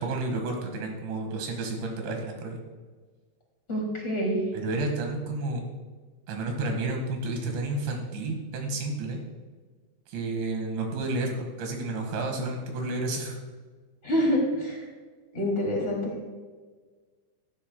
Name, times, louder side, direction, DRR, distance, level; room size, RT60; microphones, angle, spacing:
voice 1, 0.0-2.6 4.5-5.6 6.3-9.2 10.1-13.4, right 2 dB, 75° right, 2 dB, 4.0 m, -31 dB
voice 2, 3.7-4.4 14.0-14.8 15.3-16.2, equal, 20° left, -2 dB, 1.8 m, -26 dB
14.5 x 12.0 x 2.3 m, 1.4 s
omnidirectional pair, 5.4 m